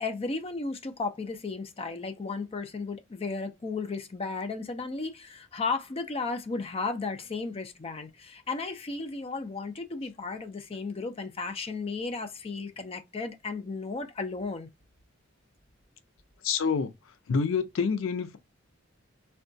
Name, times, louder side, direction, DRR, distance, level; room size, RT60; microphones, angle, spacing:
voice 1, 0.0-14.7, left 4 dB, 30° left, 0.4 m, -34 dB
voice 2, 16.4-16.9 17.3-18.4, left 5 dB, 80° left, 0.5 m, -27 dB
3.6 x 2.2 x 2.6 m
head